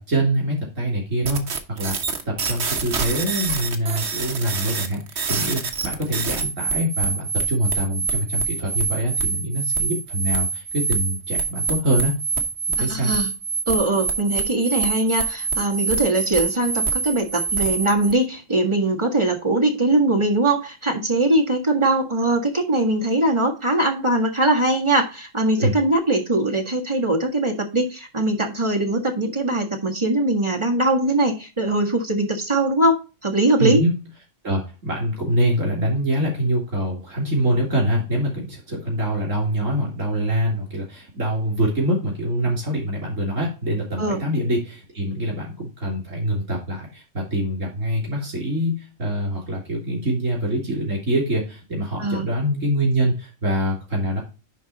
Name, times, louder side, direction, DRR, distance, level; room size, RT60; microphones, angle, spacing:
voice 1, 0.1-1.4 1.7-2.0 2.3-12.1 12.8-13.1 25.5-25.7 33.6-34.0 34.4-54.2, equal, 85° right, -2 dB, 3.7 m, -24 dB
sound 1, 1.2-18.1, right 5 dB, 60° right, 1.4 m, -26 dB
voice 2, 12.8-13.3 13.7-33.8 44.0-44.2 52.0-52.3, right 2 dB, 25° right, 1 dB, 1.7 m, -21 dB
11.0 x 3.6 x 4.0 m, 0.30 s
omnidirectional pair, 1.3 m